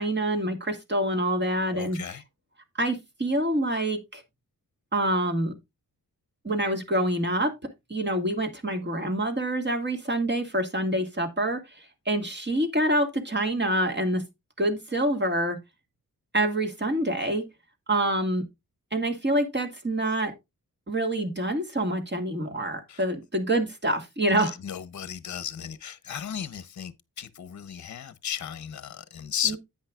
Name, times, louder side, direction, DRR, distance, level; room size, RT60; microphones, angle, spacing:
voice 1, 0.0-2.0 2.7-4.2 4.9-5.5 6.4-7.5 7.9-14.2 14.6-15.6 16.3-17.5 17.9-18.5 18.9-20.3 20.9-24.5 29.5-29.6, right 1 dB, 30° right, 2.0 m, -26 dB
voice 2, 1.7-2.2 22.9-23.0 24.4-29.6, left 9 dB, 50° left, 0.8 m, -35 dB
10.0 x 8.6 x 2.4 m
wide cardioid pair, 105°, 37 cm